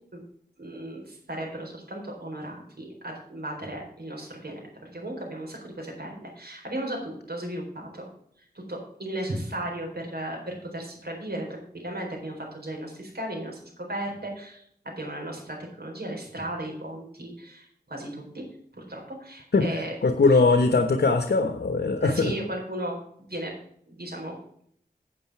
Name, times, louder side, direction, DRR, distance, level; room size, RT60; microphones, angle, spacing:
voice 1, 0.6-8.1 8.7-18.4 18.7-19.9 20.3-20.4 22.0-23.0 23.3-23.5 23.9-24.4, right 1 dB, 70° right, 1 dB, 4.2 m, -35 dB
voice 2, 20.0-22.3, left 3 dB, 75° left, 8 dB, 1.0 m, -21 dB
9.1 x 8.4 x 4.7 m, 0.64 s
wide cardioid pair, 50°, 17 cm